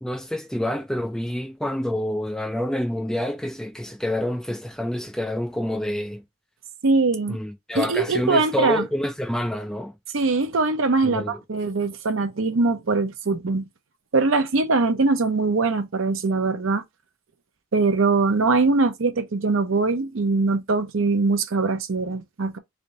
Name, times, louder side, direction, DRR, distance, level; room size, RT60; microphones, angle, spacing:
voice 1, 0.0-6.2 7.3-9.9 11.0-11.4, left 1 dB, 5° left, 0.3 m, -27 dB
voice 2, 6.8-7.4 7.7-8.8 10.1-13.6 14.1-16.8 17.7-22.6, right 3 dB, 70° right, 0.7 m, -22 dB
3.4 x 2.6 x 3.9 m
head